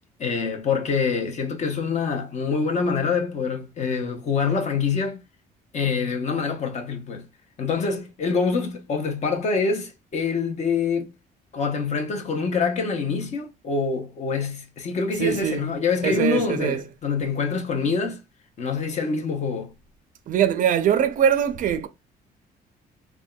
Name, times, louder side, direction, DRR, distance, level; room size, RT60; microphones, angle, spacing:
voice 1, 0.2-5.2 5.7-7.2 7.6-11.1 11.5-18.2 18.6-19.7, left 5 dB, 45° left, 0.7 m, -25 dB
voice 2, 15.2-15.6 16.0-16.8 20.3-21.9, right 8 dB, 50° right, 0.4 m, -22 dB
3.4 x 2.2 x 2.2 m
cardioid pair, 110°, 17 cm